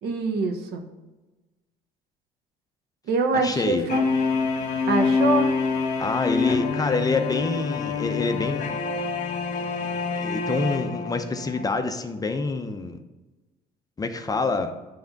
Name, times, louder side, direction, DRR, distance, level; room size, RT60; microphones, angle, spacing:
voice 1, 0.0-0.8 3.1-4.1 4.9-5.5, right 3 dB, 75° right, 5 dB, 1.2 m, -24 dB
voice 2, 3.3-3.9 6.0-8.9 10.1-13.0 14.0-14.8, left 3 dB, 20° left, 7 dB, 0.7 m, -27 dB
sound 1, 3.9-11.6, left 4 dB, 50° left, 1.4 m, -26 dB
9.2 x 3.5 x 5.2 m, 1.1 s
cardioid pair, 110°, 17 cm